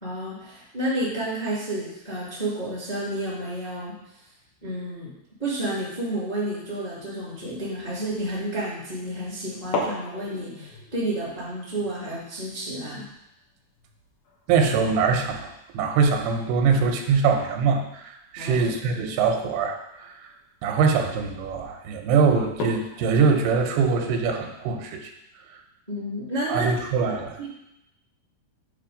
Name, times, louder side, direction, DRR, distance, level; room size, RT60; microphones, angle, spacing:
voice 1, 0.0-3.9 4.6-5.1 5.4-13.0 18.4-18.7 25.9-26.7 27.0-27.5, right 1 dB, 20° left, -8 dB, 1.0 m, -30 dB
sound 1, 8.1-8.4 9.6-16.0 16.3-16.4 16.8-17.1 18.1-18.3 18.9-19.0 19.6-19.7 20.0-20.4 21.0-21.3 21.7-21.8 22.4-24.8, left 2 dB, 65° left, 2.0 m, -37 dB
voice 2, 14.5-20.3 20.6-25.1 26.5-27.4, right 5 dB, 85° right, 3 dB, 2.6 m, -23 dB
8.5 x 3.0 x 5.0 m, 0.83 s
omnidirectional pair, 4.5 m